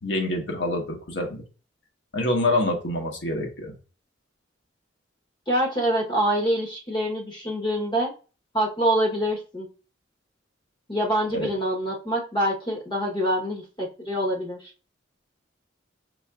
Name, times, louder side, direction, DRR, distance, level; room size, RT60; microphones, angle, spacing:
voice 1, 0.0-1.4 2.1-3.7 11.3-11.5, left 1 dB, 70° left, 2 dB, 1.2 m, -26 dB
voice 2, 5.5-8.1 8.5-9.7 10.9-14.7, right 1 dB, 25° left, -1 dB, 1.0 m, -25 dB
5.1 x 3.5 x 2.4 m, 0.35 s
head